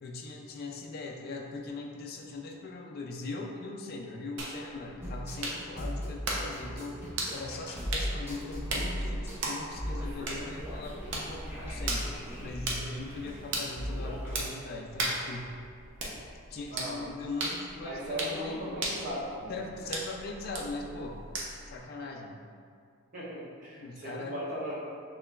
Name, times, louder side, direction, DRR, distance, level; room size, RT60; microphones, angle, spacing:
voice 1, 0.0-15.5 16.5-18.8 19.5-21.2 21.7-22.4 23.8-24.4, left 3 dB, 45° left, 1 dB, 0.3 m, -40 dB
sound 1, 4.4-21.8, right 2 dB, 60° right, 0.7 m, -38 dB
sound 2, 5.0-14.5, equal, 10° right, 0.8 m, -38 dB
voice 2, 17.8-19.9 23.1-24.8, equal, 40° right, -8 dB, 1.1 m, -37 dB
6.4 x 3.0 x 2.3 m, 2.3 s
head